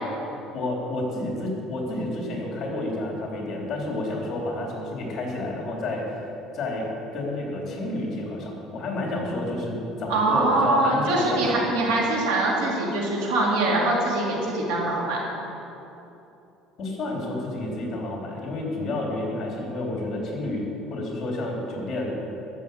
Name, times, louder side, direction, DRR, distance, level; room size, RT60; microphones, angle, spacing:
voice 1, 0.5-6.2 6.5-11.7 16.8-22.2, left 2 dB, 35° left, -1 dB, 3.3 m, -30 dB
voice 2, 10.1-15.2, right 2 dB, 90° right, -3 dB, 3.3 m, -23 dB
13.5 x 6.8 x 8.0 m, 2.9 s
cardioid pair, 145°, 0 cm